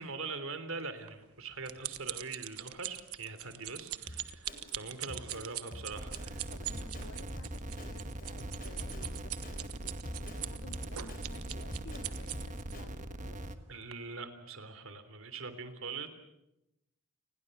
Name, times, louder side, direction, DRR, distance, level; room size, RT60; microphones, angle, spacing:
voice 1, 0.0-6.5 13.7-16.1, right 4 dB, 65° right, 10 dB, 3.3 m, -42 dB
sound 1, 1.1-12.7 13.4-13.6 13.9-14.0, right 14 dB, 85° right, 1.3 m, -42 dB
Drum kit, 4.1-12.8, equal, 40° left, 4.4 m, -47 dB
sound 2, 5.9-13.5, right 1 dB, 35° right, 1.5 m, -41 dB
voice 2, 6.5-13.6, left 2 dB, 70° left, 8 dB, 2.2 m, -54 dB
29.0 x 21.5 x 6.7 m, 0.87 s
head